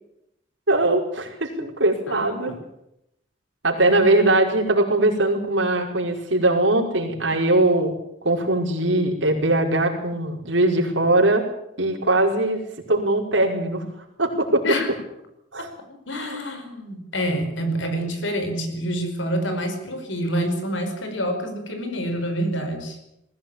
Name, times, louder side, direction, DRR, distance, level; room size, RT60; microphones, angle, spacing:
voice 1, 0.7-2.5 3.6-7.9 8.2-11.4 11.8-12.6 12.9-13.8 14.2-14.6 15.5-15.7 16.2-16.4, right 2 dB, 85° right, 1 dB, 5.3 m, -21 dB
voice 2, 2.1-2.5 14.6-14.9 15.6-15.7 16.1-23.0, equal, 90° left, 6 dB, 5.0 m, -27 dB
20.5 x 16.0 x 9.0 m, 0.82 s
head